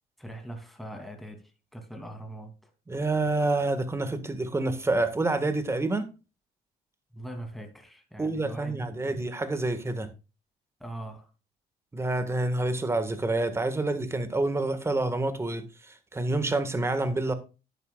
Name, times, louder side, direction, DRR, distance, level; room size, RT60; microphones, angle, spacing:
voice 1, 0.2-2.7 7.1-9.2 10.8-11.3, right 1 dB, ahead, 2.8 m, -41 dB
voice 2, 2.9-6.1 8.2-10.1 11.9-17.3, right 2 dB, 15° right, 1.6 m, -28 dB
11.0 x 10.5 x 2.4 m
cardioid pair, 110°, 17 cm